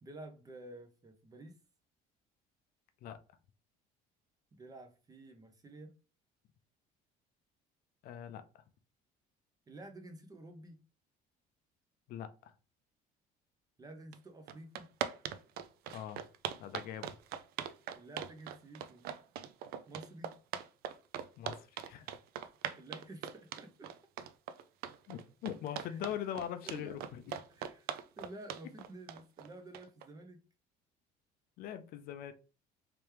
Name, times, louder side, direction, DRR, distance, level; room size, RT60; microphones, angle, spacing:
voice 1, 0.0-1.5 4.5-5.9 9.7-10.8 13.8-14.9 18.0-19.1 19.9-20.3 22.8-23.9 25.7-26.0 26.6-27.0 27.5-30.4, right 2 dB, 20° right, 0.7 m, -51 dB
voice 2, 8.0-8.4 12.1-12.5 15.9-16.2 16.6-17.1 21.4-21.6 21.9-22.1 25.1-27.0 31.6-32.3, left 10 dB, 60° left, 0.5 m, -41 dB
sound 1, 14.1-14.2 14.5-30.1, right 9 dB, 65° right, 0.4 m, -41 dB
3.4 x 3.0 x 3.2 m
cardioid pair, 135°, 17 cm